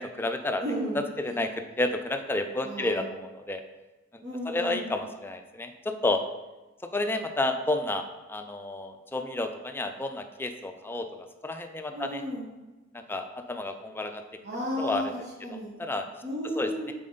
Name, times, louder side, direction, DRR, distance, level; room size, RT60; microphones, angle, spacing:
voice 1, 0.0-0.6 0.9-3.6 4.1-6.2 6.9-11.1 11.4-12.2 12.9-14.2 14.8-15.1 15.5-16.1 16.6-16.9, left 2 dB, 10° left, 6 dB, 0.4 m, -31 dB
voice 2, 0.6-1.0 2.6-3.0 4.2-4.9 11.9-12.4 14.4-15.7 16.2-16.9, equal, 55° right, -5 dB, 1.1 m, -33 dB
7.5 x 4.2 x 3.9 m, 1.1 s
head